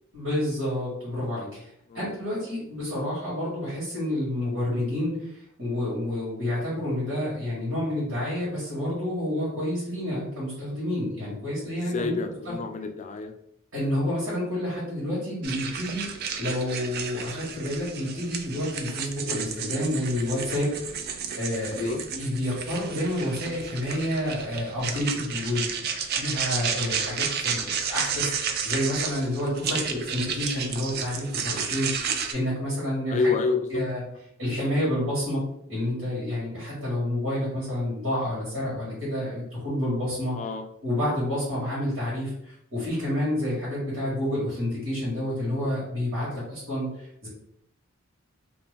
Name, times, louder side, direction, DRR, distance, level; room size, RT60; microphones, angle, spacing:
voice 1, 0.1-1.7 1.9-12.1 12.4-12.6 13.7-16.1 16.4-20.8 21.1-25.6 26.2-33.3 33.7-34.0 34.4-35.4 35.7-40.3 40.8-47.3, left 1 dB, 85° right, -10 dB, 1.4 m, -29 dB
voice 2, 11.8-13.3 21.7-22.0 29.7-29.8 33.1-34.0 40.3-40.6 46.3-46.5, left 4 dB, 35° left, 7 dB, 0.3 m, -28 dB
sound 1, 15.4-32.3, right 6 dB, 50° right, 0.3 m, -32 dB
2.6 x 2.1 x 3.3 m, 0.73 s
head